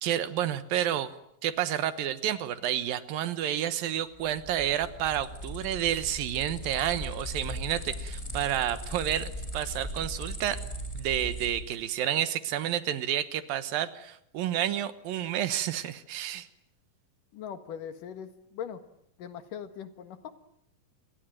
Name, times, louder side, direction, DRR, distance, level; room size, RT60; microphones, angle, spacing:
voice 1, 0.0-1.1 1.4-10.6 10.9-16.5, right 11 dB, 80° right, 13 dB, 3.0 m, -30 dB
sound 1, 4.1-11.8, equal, 10° left, 3.7 m, -38 dB
voice 2, 17.3-18.8 19.2-20.3, left 8 dB, 70° left, 10 dB, 3.2 m, -40 dB
28.5 x 22.5 x 9.2 m, 0.74 s
omnidirectional pair, 4.1 m